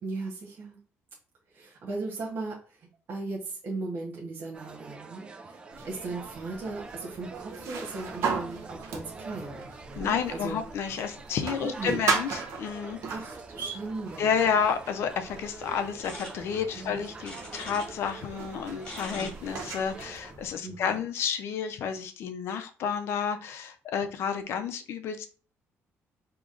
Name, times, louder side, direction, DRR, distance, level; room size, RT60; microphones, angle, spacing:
voice 1, 0.0-0.8 1.5-10.6 11.4-11.9 13.1-14.3 16.7-17.0 19.2-19.4 20.6-20.9, right 3 dB, 45° right, -3 dB, 0.9 m, -37 dB
sound 1, 4.5-20.3, right 3 dB, 20° right, 0.3 m, -46 dB
sound 2, 5.7-20.5, right 5 dB, 75° right, 0.8 m, -37 dB
voice 2, 10.0-13.0 14.2-25.3, left 7 dB, 60° left, 8 dB, 0.5 m, -30 dB
sound 3, 16.0-18.2 18.4-21.0, left 1 dB, 20° left, 2.0 m, -44 dB
5.0 x 2.9 x 2.5 m, 0.36 s
cardioid pair, 180°, 5 cm